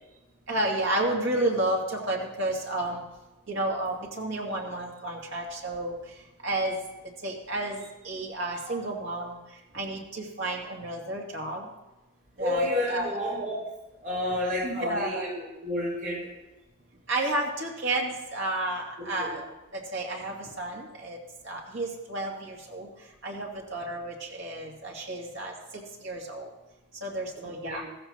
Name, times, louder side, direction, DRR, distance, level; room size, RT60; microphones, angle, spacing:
voice 1, 0.5-3.0 3.5-6.0 6.4-6.8 7.2-9.4 9.7-11.7 12.4-13.1 14.6-15.2 17.1-19.4 19.7-21.2 21.4-22.9 23.2-25.5 26.0-26.5 27.0-27.8, right 1 dB, 65° right, -1 dB, 2.6 m, -31 dB
voice 2, 12.4-13.6 14.0-16.2 19.2-19.4 27.3-27.8, left 1 dB, 45° right, -8 dB, 5.7 m, -30 dB
15.0 x 14.5 x 3.0 m, 1.0 s
head